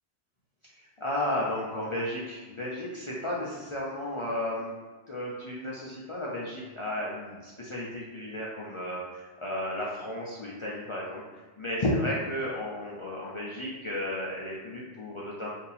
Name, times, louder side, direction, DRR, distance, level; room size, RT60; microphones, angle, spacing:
voice 1, 0.7-4.7 5.1-15.5, left 1 dB, 45° left, -5 dB, 0.4 m, -33 dB
2.7 x 2.7 x 4.0 m, 1.3 s
omnidirectional pair, 1.1 m